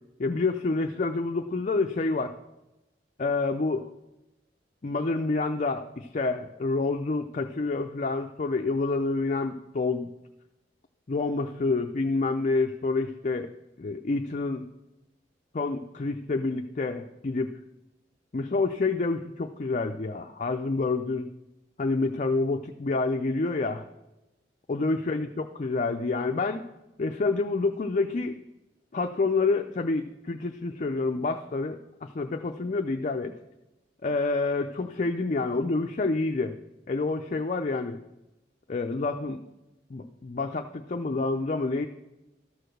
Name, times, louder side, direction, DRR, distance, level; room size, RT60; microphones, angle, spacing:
voice 1, 0.2-2.3 3.2-3.9 4.8-10.1 11.1-13.5 13.8-14.7 15.5-17.5 18.3-21.3 21.8-23.8 24.7-26.7 27.0-28.4 28.9-33.3 34.0-36.6 36.9-38.0 38.7-39.4 39.9-41.9, left 3 dB, 40° left, 4 dB, 0.5 m, -28 dB
13.0 x 4.8 x 6.4 m, 0.96 s
head